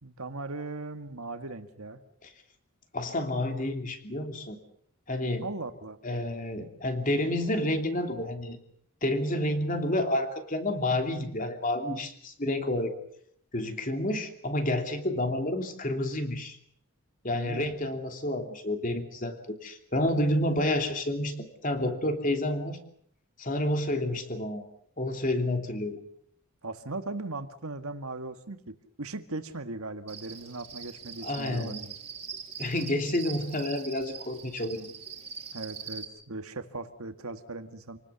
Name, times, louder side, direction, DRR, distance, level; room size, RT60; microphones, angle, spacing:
voice 1, 0.0-2.0 5.4-6.0 17.3-17.7 26.6-31.9 35.5-38.0, right 2 dB, 75° right, 8 dB, 1.8 m, -38 dB
voice 2, 2.9-4.6 5.1-5.5 6.0-8.6 9.0-12.9 13.5-16.6 17.2-22.8 23.4-24.6 25.0-26.0 31.2-31.8 32.6-34.9, left 1 dB, 35° left, 5 dB, 3.0 m, -29 dB
Cricket, 30.1-36.0, right 6 dB, 30° right, 3.1 m, -42 dB
28.5 x 19.0 x 7.0 m, 0.68 s
head